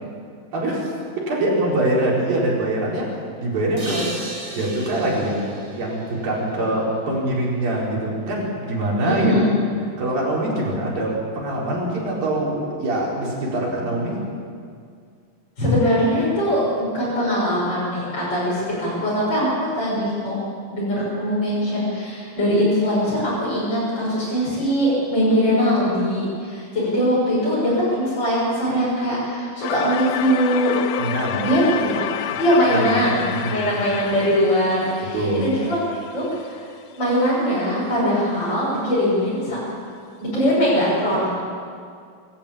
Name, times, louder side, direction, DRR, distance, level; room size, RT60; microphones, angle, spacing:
voice 1, 0.5-3.1 3.4-4.2 4.5-5.4 5.7-9.4 10.0-14.2 31.0-31.5 32.3-32.4 32.7-33.0 33.3-33.7 35.0-35.5, right 1 dB, 70° right, -4 dB, 6.6 m, -24 dB
sound 1, 3.8-7.3, right 1 dB, 15° right, 1.1 m, -36 dB
voice 2, 9.0-9.5 15.6-20.4 20.7-30.8 31.4-32.1 32.4-35.8 36.1-36.7 36.9-39.6 40.2-41.4, equal, 30° left, -9 dB, 7.2 m, -21 dB
sound 2, 29.6-36.5, left 10 dB, 85° left, 2.6 m, -30 dB
25.5 x 13.5 x 8.7 m, 2.2 s
omnidirectional pair, 4.2 m